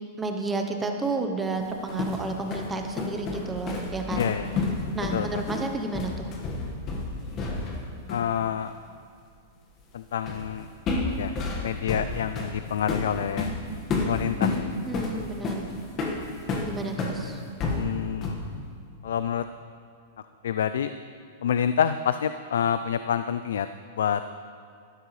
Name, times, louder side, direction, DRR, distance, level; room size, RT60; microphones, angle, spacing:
voice 1, 0.2-4.3 4.9-6.3 14.9-15.6 16.6-17.4, right 3 dB, 10° right, 4 dB, 0.8 m, -31 dB
sound 1, 1.6-7.8 8.1-8.3 10.3-10.5 10.9-17.2 17.6-18.5, left 3 dB, 30° left, 1.5 m, -30 dB
voice 2, 4.2-4.5 5.1-5.4 8.1-8.7 9.9-10.7 11.2-11.3 11.6-13.5 14.0-14.7 15.1-15.2 17.7-18.4 19.0-19.4 20.4-20.9 21.4-23.7 23.9-24.2, left 8 dB, 85° left, 11 dB, 0.3 m, -27 dB
13.0 x 12.5 x 3.2 m, 2.2 s
supercardioid pair, 150°, 0 cm